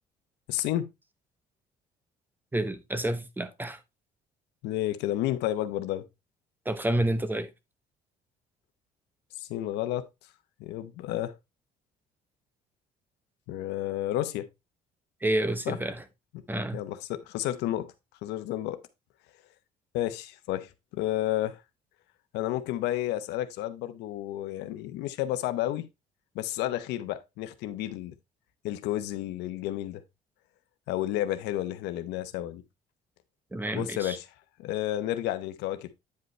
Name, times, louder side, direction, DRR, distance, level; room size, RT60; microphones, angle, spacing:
voice 1, 0.5-0.9 4.6-6.0 9.3-10.1 10.6-11.3 13.5-14.5 15.7-15.8 16.7-17.9 18.2-18.8 19.9-21.6 22.3-25.9 26.3-28.1 28.6-30.0 30.9-32.6 33.7-34.3 34.6-35.9, left 13 dB, 90° left, 0.8 m, -31 dB
voice 2, 2.5-3.8 6.6-7.5 15.2-16.0 16.5-16.8 33.5-34.2, right 1 dB, 10° right, 0.9 m, -29 dB
9.4 x 5.2 x 3.2 m
cardioid pair, 110°, 17 cm